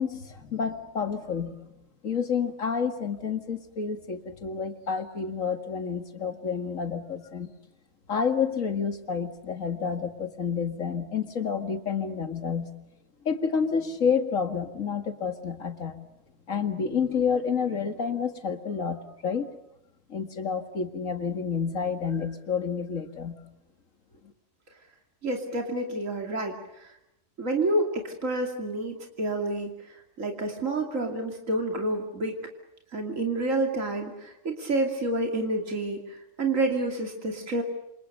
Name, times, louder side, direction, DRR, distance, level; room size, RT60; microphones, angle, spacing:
voice 1, 0.0-1.5 2.0-7.5 8.1-12.7 13.2-16.0 16.5-19.5 20.1-23.4, left 6 dB, 85° left, 8 dB, 2.4 m, -29 dB
voice 2, 25.2-26.9 27.4-32.4 32.9-37.6, right 2 dB, 80° right, 3 dB, 3.1 m, -29 dB
27.5 x 27.5 x 6.8 m, 0.84 s
omnidirectional pair, 1.3 m